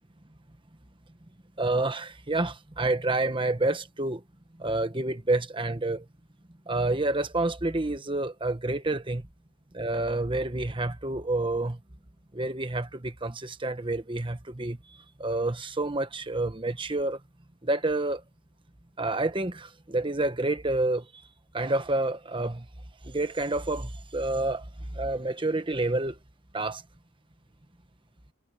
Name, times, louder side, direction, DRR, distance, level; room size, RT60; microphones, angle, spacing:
voice 1, 1.6-4.2 4.6-6.0 6.7-9.3 9.7-11.8 12.3-14.8 15.2-17.2 17.6-18.2 19.0-21.0 21.5-22.6 23.0-24.6 24.9-26.1 26.5-26.8, right 2 dB, 25° right, 1.3 m, -28 dB
head